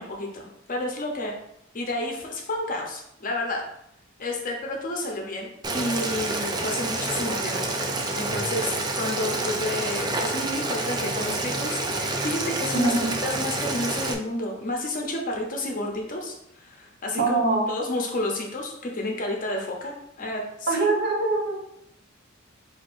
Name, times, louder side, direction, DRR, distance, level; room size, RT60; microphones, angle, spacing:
voice 1, 0.0-1.4 1.7-3.6 4.2-7.8 8.2-12.9 13.2-16.3 16.6-17.4 17.7-20.9, left 1 dB, 40° left, 0 dB, 0.7 m, -30 dB
Boiling, 5.6-14.1, right 2 dB, 20° right, 0.4 m, -28 dB
voice 2, 12.7-13.1 17.2-17.7 20.7-21.6, right 2 dB, 50° right, -1 dB, 0.9 m, -23 dB
6.0 x 2.7 x 2.6 m, 0.76 s
head